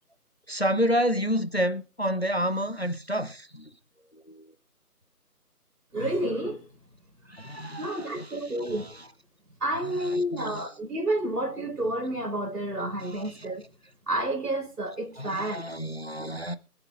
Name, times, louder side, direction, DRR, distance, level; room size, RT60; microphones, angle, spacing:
voice 1, 0.5-3.7 4.3-4.5 7.3-8.0 8.8-8.9 10.3-10.6 13.1-13.5 15.2-16.6, equal, 40° left, 0.6 m, -29 dB
voice 2, 5.9-6.6 7.8-9.0 9.6-13.6 14.1-15.6, right 1 dB, 75° right, 4.9 m, -30 dB
23.5 x 7.9 x 2.5 m
figure-of-eight pair, 170°, 47 cm